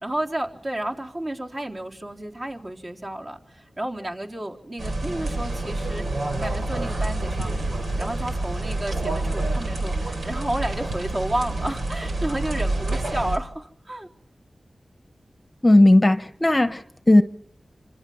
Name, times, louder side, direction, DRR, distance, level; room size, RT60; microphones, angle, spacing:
voice 1, 0.0-6.0 6.3-7.7 8.0-14.1, right 1 dB, 40° right, 3.9 m, -31 dB
sound 1, 4.8-13.4, right 2 dB, 85° right, 4.6 m, -27 dB
voice 2, 15.6-17.2, left 1 dB, 20° left, 1.1 m, -16 dB
27.0 x 26.5 x 5.8 m
wide cardioid pair, 85°, 0 cm